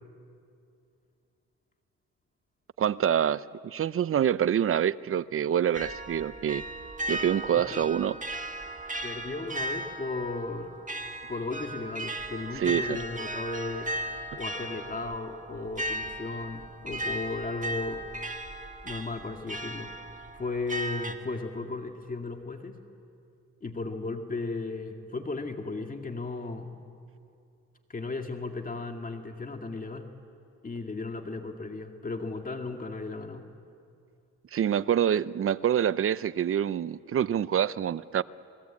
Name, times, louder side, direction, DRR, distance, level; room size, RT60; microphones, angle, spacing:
voice 1, 2.8-6.6 7.1-8.2 12.5-13.0 34.5-38.2, right 9 dB, 45° right, 17 dB, 0.7 m, -26 dB
sound 1, 5.7-21.1, right 1 dB, 25° right, 1.7 m, -37 dB
voice 2, 9.0-10.7 11.3-13.9 14.4-18.0 18.8-19.9 20.3-22.8 23.6-26.7 27.9-30.1 30.6-33.4, left 3 dB, 30° left, 4 dB, 2.1 m, -35 dB
29.0 x 21.5 x 8.5 m, 2.5 s
cardioid pair, 90°, 30 cm